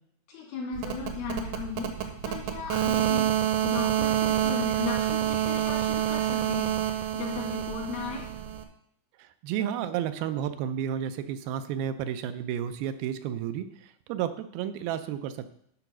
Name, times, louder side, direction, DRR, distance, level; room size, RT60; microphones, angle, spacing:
voice 1, 0.3-8.3, left 6 dB, 80° left, -1 dB, 4.1 m, -37 dB
sound 1, 0.7-8.6, right 11 dB, 70° right, 2.0 m, -28 dB
voice 2, 9.2-15.5, right 9 dB, 90° right, 10 dB, 2.5 m, -32 dB
11.5 x 4.0 x 6.0 m, 0.69 s
omnidirectional pair, 4.2 m